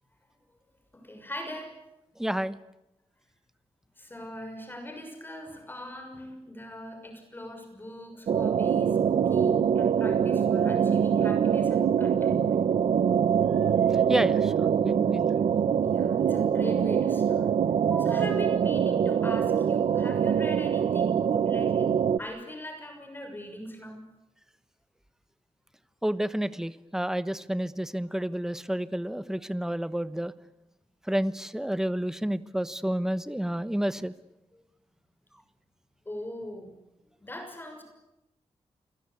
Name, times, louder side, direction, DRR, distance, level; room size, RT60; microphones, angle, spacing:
voice 1, 0.9-1.8 4.0-12.6 15.8-17.6 18.0-24.0 34.5-34.6 36.0-36.7 37.2-37.8, left 1 dB, 20° left, 5 dB, 6.4 m, -41 dB
voice 2, 2.2-2.6 13.9-15.3 17.7-18.2 26.0-30.3 31.1-34.1, right 1 dB, 5° right, 14 dB, 1.1 m, -30 dB
sound 1, 8.3-22.2, right 8 dB, 80° right, 0.9 m, -24 dB
29.5 x 22.0 x 8.5 m, 0.90 s
wide cardioid pair, 130°, 11 cm